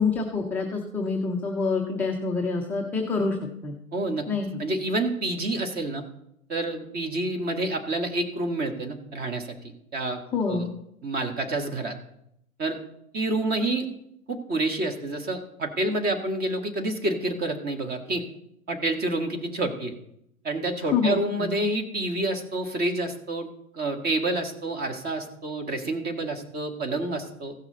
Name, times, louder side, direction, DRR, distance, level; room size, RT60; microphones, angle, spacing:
voice 1, 0.0-3.4 3.6-3.7 4.3-4.6 10.3-10.7 20.9-21.6, left 4 dB, 5° left, -1 dB, 0.4 m, -26 dB
voice 2, 3.9-4.3 4.6-6.0 6.5-10.7 11.0-12.0 12.6-12.8 13.1-13.9 14.3-18.2 18.7-19.9 20.4-23.5 23.7-27.5, right 2 dB, 20° right, 5 dB, 1.6 m, -28 dB
16.0 x 5.9 x 3.9 m, 0.76 s
figure-of-eight pair, 110°, 43 cm